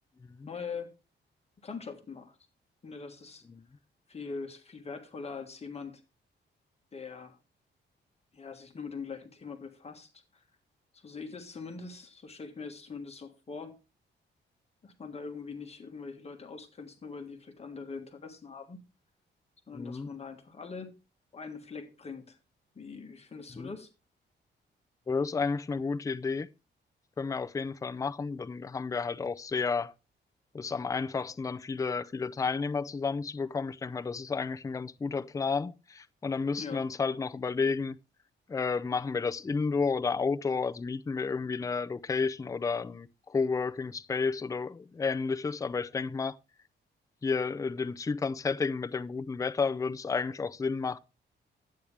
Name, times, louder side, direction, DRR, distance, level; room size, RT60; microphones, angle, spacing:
voice 1, 0.5-0.9 1.6-2.4 2.8-3.4 4.1-6.0 6.9-7.4 8.3-10.4 10.9-13.8 14.8-18.8 19.7-20.9 21.3-22.4 22.7-23.9 36.6-36.8, left 5 dB, 30° left, 1.6 m, -42 dB
voice 2, 19.7-20.1 23.6-23.7 25.1-26.5 27.2-29.9 30.5-38.0 38.5-46.4 47.2-51.0, left 4 dB, 15° left, 0.4 m, -31 dB
12.0 x 8.6 x 3.3 m
wide cardioid pair, 145°, 20 cm